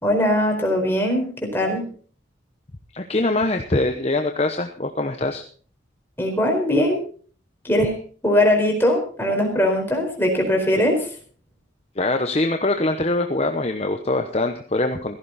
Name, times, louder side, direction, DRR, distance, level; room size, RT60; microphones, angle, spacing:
voice 1, 0.0-1.8 6.2-7.0 7.6-7.9 8.2-11.1, left 1 dB, 10° left, 1 dB, 4.5 m, -20 dB
voice 2, 2.9-5.4 12.0-15.2, left 2 dB, 35° left, 6 dB, 1.0 m, -23 dB
16.0 x 14.5 x 4.2 m, 0.43 s
head